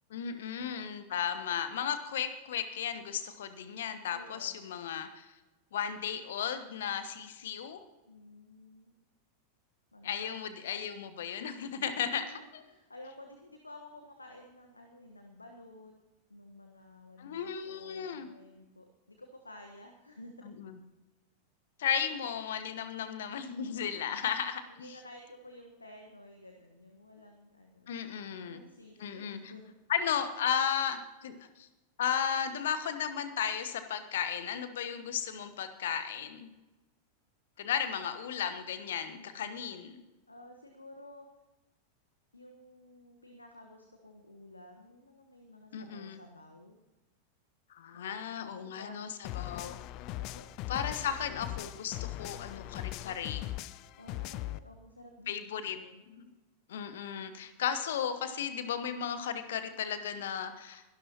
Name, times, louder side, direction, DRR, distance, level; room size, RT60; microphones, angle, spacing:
voice 1, 0.1-5.3 5.7-7.8 10.0-12.6 17.2-18.3 20.6-20.8 21.8-24.9 27.9-28.6 29.0-29.4 29.9-31.7 32.0-36.5 37.6-40.0 45.7-46.2 47.7-49.8 50.7-53.5 55.3-55.8 56.1-56.3 56.7-60.8, left 8 dB, 60° left, 11 dB, 1.1 m, -35 dB
voice 2, 4.0-5.0 8.1-8.9 9.9-10.3 12.1-15.9 16.3-20.3 23.6-24.2 24.7-27.9 28.4-29.6 39.1-39.8 40.3-41.3 42.3-46.8 47.9-48.9 49.2-49.8 50.1-50.5 54.0-56.0, left 1 dB, 80° left, 4 dB, 1.3 m, -53 dB
sound 1, 49.2-54.6, left 16 dB, 40° left, 0.4 m, -40 dB
23.0 x 12.0 x 2.9 m, 1.1 s
figure-of-eight pair, 90°, 0 cm